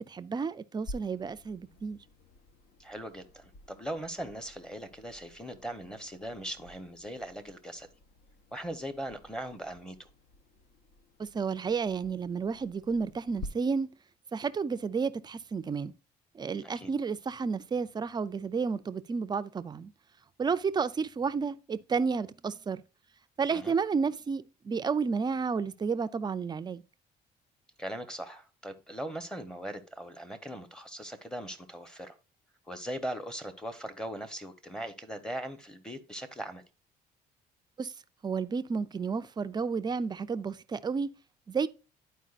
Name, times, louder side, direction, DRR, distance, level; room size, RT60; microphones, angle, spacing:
voice 1, 0.0-2.0 11.2-13.9 14.3-15.9 16.3-19.9 20.4-22.8 23.4-26.8 37.8-37.9 38.2-41.1 41.5-41.7, right 5 dB, 25° right, 0.4 m, -31 dB
sound 1, 0.8-13.5, left 1 dB, 65° left, 1.0 m, -50 dB
voice 2, 2.8-7.9 8.5-10.1 16.6-16.9 23.5-23.7 27.8-32.2 32.7-36.6, right 1 dB, 5° left, 0.9 m, -40 dB
11.0 x 4.6 x 2.4 m
cardioid pair, 110°, 17 cm